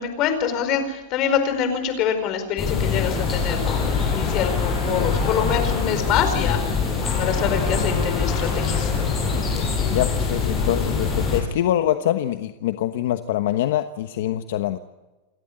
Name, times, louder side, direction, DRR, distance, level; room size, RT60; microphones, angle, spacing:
voice 1, 0.0-6.6 7.2-8.9, left 8 dB, 35° left, 8 dB, 4.6 m, -25 dB
sound 1, 2.6-11.4, left 5 dB, 20° left, 6.4 m, -23 dB
voice 2, 9.9-14.8, left 12 dB, 65° left, 8 dB, 1.2 m, -24 dB
28.5 x 13.0 x 9.8 m, 1.1 s
supercardioid pair, 160°, 0 cm